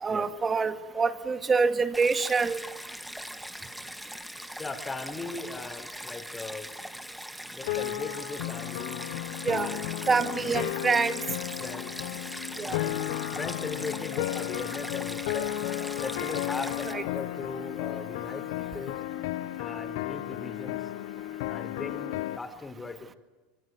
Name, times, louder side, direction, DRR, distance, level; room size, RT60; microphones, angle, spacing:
voice 1, 0.0-2.6 9.5-9.8 10.1-11.2 12.6-12.8 16.9-17.0, right 4 dB, 20° right, 9 dB, 2.2 m, -26 dB
Stream, 1.9-16.9, equal, ahead, 1.6 m, -41 dB
voice 2, 4.6-6.7 7.4-9.1 9.5-9.8 10.4-10.7 11.6-11.9 12.6-13.0 13.3-15.5 16.0-19.0 19.6-20.9 21.5-23.2, left 3 dB, 15° left, 7 dB, 4.3 m, -39 dB
sound 1, 7.6-22.4, left 16 dB, 75° left, 0.9 m, -34 dB
26.0 x 23.5 x 9.4 m, 1.2 s
supercardioid pair, 110°, 0 cm